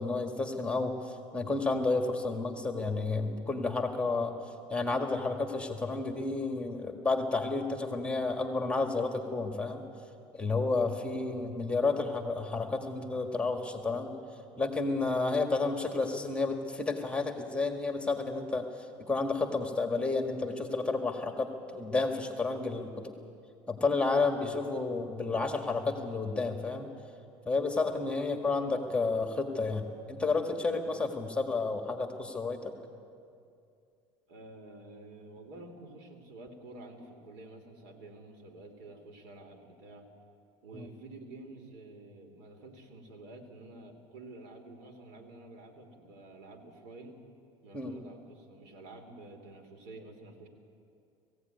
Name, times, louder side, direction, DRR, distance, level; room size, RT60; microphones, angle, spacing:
voice 1, 0.0-4.3 4.7-9.8 10.3-14.1 14.6-18.6 19.1-23.1 23.7-26.9 27.4-32.7 40.7-40.9 47.7-47.9, left 3 dB, 10° left, 4 dB, 1.8 m, -31 dB
voice 2, 10.8-11.6 28.6-28.9 34.3-40.1 40.6-47.2 47.6-50.5, right 2 dB, 80° right, 4 dB, 3.2 m, -49 dB
19.0 x 16.0 x 9.4 m, 2.5 s
supercardioid pair, 110°, 12 cm